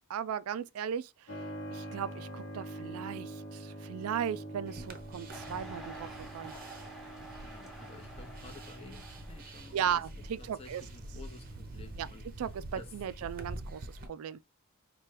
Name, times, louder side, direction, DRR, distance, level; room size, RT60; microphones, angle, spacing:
voice 1, 0.1-1.4 1.7-6.1 6.3-6.5 9.7-10.8 12.0-12.1 12.4-14.4, right 8 dB, 75° right, 0.3 m, -36 dB
Keyboard (musical), 1.3-13.7, right 1 dB, 55° left, 0.9 m, -47 dB
sound 1, 4.7-14.1, right 1 dB, 45° right, 0.7 m, -47 dB
sound 2, 5.3-9.7, right 1 dB, ahead, 0.9 m, -49 dB
voice 2, 7.4-10.0 10.4-12.2 12.7-13.1, left 2 dB, 25° left, 0.7 m, -51 dB
4.3 x 2.3 x 3.2 m
head